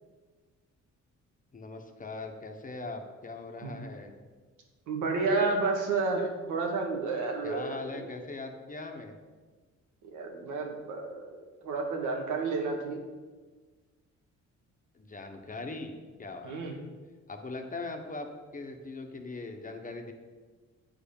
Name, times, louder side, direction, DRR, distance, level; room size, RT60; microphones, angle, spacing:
voice 1, 1.5-4.1 7.4-9.2 14.9-15.9 16.2-16.6 17.3-18.3 18.5-20.1, left 3 dB, 25° left, 4 dB, 1.3 m, -40 dB
voice 2, 4.9-8.1 10.0-11.3 11.6-13.0 16.4-16.7, right 3 dB, 85° right, 2 dB, 1.9 m, -31 dB
8.6 x 4.8 x 7.3 m, 1.4 s
cardioid pair, 90°, 30 cm